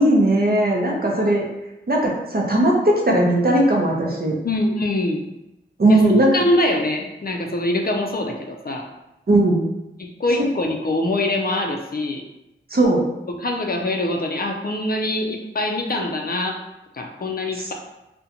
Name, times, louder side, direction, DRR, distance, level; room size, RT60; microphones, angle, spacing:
voice 1, 0.0-1.4 1.9-4.3 5.8-6.3 9.3-9.6 12.7-13.0, right 1 dB, 50° right, -1 dB, 0.6 m, -18 dB
voice 2, 4.4-5.2 5.9-8.9 10.0-12.2 13.4-16.6 16.9-17.7, left 1 dB, 45° left, 2 dB, 0.4 m, -24 dB
2.5 x 2.1 x 2.8 m, 0.93 s
wide cardioid pair, 50°, 21 cm